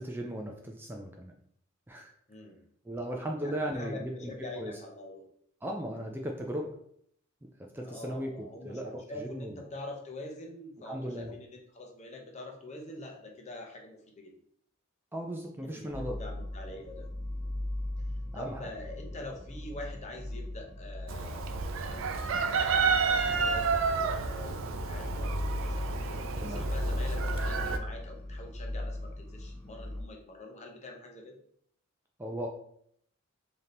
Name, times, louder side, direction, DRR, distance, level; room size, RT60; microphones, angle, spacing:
voice 1, 0.0-1.3 1.9-2.1 2.8-4.3 4.6-4.7 5.6-6.7 7.7-9.5 10.8-11.3 15.1-16.2 18.3-18.7 26.4-26.6 32.2-32.5, right 1 dB, 10° right, 1 dB, 0.4 m, -37 dB
voice 2, 2.3-2.6 3.4-5.2 7.8-14.3 15.6-17.1 17.4-17.7 18.3-21.4 21.9-23.7 24.2-31.4, left 2 dB, 35° left, 2 dB, 0.7 m, -45 dB
sound 1, 15.9-30.0, left 1 dB, 10° left, 0.9 m, -38 dB
Chicken rooster, 21.1-27.8, right 5 dB, 70° right, 0.4 m, -30 dB
3.5 x 2.8 x 3.7 m, 0.66 s
head